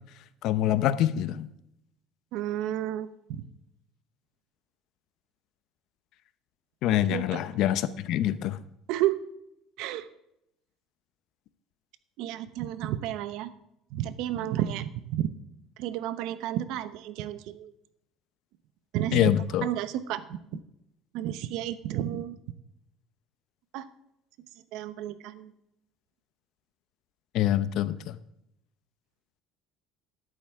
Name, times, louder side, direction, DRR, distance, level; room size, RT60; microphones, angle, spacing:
voice 1, 0.4-1.5 6.8-8.6 19.1-19.7 27.3-28.2, left 12 dB, 60° left, 14 dB, 0.7 m, -25 dB
voice 2, 2.3-3.4 7.1-7.4 8.9-9.2 9.8-10.1 12.2-13.5 13.9-15.3 15.8-17.7 18.9-19.3 19.6-20.4 21.1-22.4 23.7-23.9 24.7-25.5, right 12 dB, 70° right, 14 dB, 0.8 m, -31 dB
13.0 x 11.0 x 3.6 m, 0.81 s
cardioid pair, 145°, 0 cm